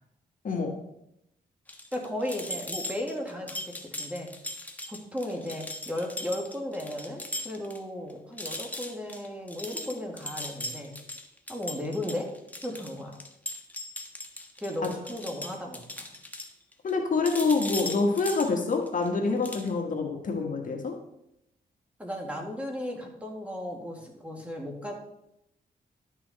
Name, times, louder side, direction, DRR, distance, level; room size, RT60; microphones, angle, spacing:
sound 1, 1.7-7.8 8.1-8.2 8.4-17.0 17.2-19.1 19.4-19.7, left 1 dB, 10° left, 1.3 m, -38 dB
voice 1, 1.9-3.6 4.0-4.3 4.9-10.9 11.5-12.3 12.6-13.2 14.6-16.1 22.0-24.9, left 1 dB, 10° right, 0 dB, 2.1 m, -35 dB
voice 2, 16.8-20.9, left 4 dB, 50° left, 2 dB, 1.6 m, -26 dB
11.5 x 6.1 x 4.2 m, 0.81 s
cardioid pair, 85°, 17 cm